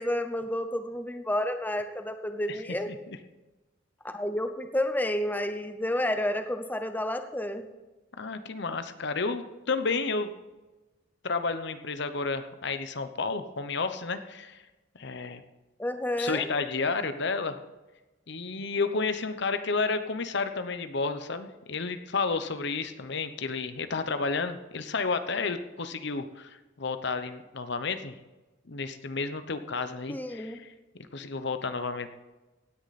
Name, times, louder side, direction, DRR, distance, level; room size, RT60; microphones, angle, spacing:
voice 1, 0.0-2.9 4.0-7.7 15.8-16.5 30.1-30.6, left 1 dB, 10° left, 8 dB, 0.7 m, -30 dB
voice 2, 8.2-10.3 11.2-14.6 14.9-15.4 16.2-17.6 18.3-28.1 28.7-30.7 31.1-32.1, left 4 dB, 60° left, 10 dB, 0.9 m, -31 dB
17.0 x 9.8 x 4.2 m, 1.1 s
head